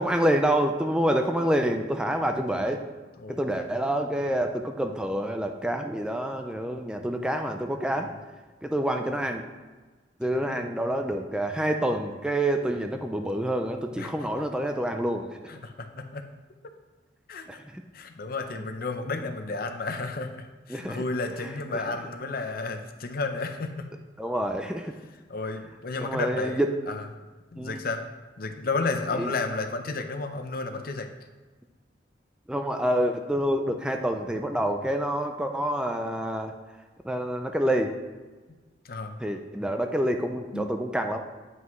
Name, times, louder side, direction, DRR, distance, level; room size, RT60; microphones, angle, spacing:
voice 1, 0.0-2.9 3.3-8.1 8.6-9.5 10.2-15.5 17.5-17.8 20.7-21.0 21.4-21.9 24.2-25.0 26.0-26.8 27.6-27.8 29.1-29.3 32.5-36.5 37.0-37.9 39.2-41.2, right 1 dB, 5° right, 5 dB, 0.4 m, -27 dB
voice 2, 3.2-3.6 10.5-10.6 14.0-14.1 15.5-16.2 17.3-17.6 17.9-23.9 25.3-27.0 27.5-28.1 28.4-31.1 38.8-39.2 40.5-40.7, left 3 dB, 55° left, 7 dB, 0.6 m, -32 dB
9.2 x 5.9 x 3.1 m, 1.3 s
head